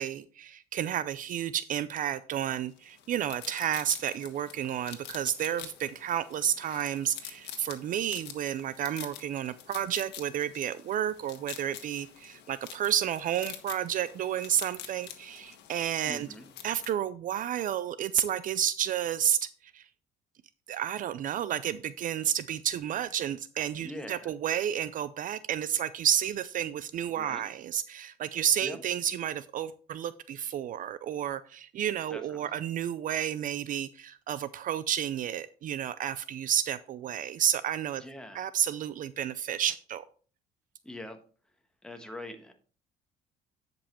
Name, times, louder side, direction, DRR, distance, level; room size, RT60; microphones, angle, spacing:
voice 1, 0.0-16.3 16.6-19.4 19.7-19.8 20.7-38.0 38.3-40.0, right 10 dB, 55° right, 16 dB, 0.4 m, -31 dB
sound 1, 2.8-16.9, left 10 dB, 80° left, 1.4 m, -47 dB
voice 2, 16.0-16.5 23.8-24.3 27.1-27.4 28.6-28.8 32.1-32.5 38.0-38.5 40.8-41.2 41.8-42.5, left 1 dB, 5° left, 5 dB, 1.5 m, -42 dB
10.0 x 5.4 x 4.2 m, 0.41 s
cardioid pair, 110°, 17 cm